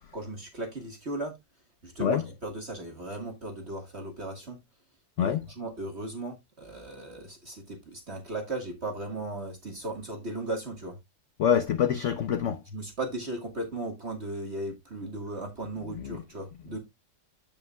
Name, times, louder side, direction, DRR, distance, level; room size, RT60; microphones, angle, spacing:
voice 1, 0.1-1.3 1.8-4.6 5.2-11.0 12.7-16.8, right 2 dB, 40° right, 1.8 m, -36 dB
voice 2, 11.4-12.6 15.9-16.2, left 8 dB, 70° left, 0.7 m, -26 dB
13.5 x 5.3 x 2.3 m
omnidirectional pair, 2.0 m